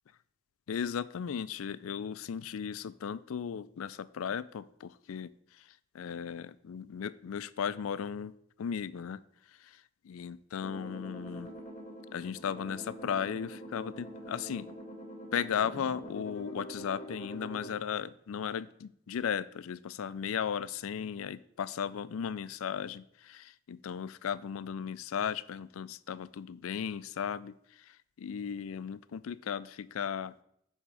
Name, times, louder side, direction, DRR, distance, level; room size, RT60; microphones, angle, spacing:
voice 1, 0.7-5.3 5.9-8.3 8.6-9.2 10.1-11.5 12.1-14.7 15.3-30.3, left 7 dB, 80° left, 16 dB, 0.4 m, -36 dB
sound 1, 10.6-17.7, equal, 35° left, 1.5 m, -45 dB
9.7 x 3.6 x 6.8 m, 0.70 s
head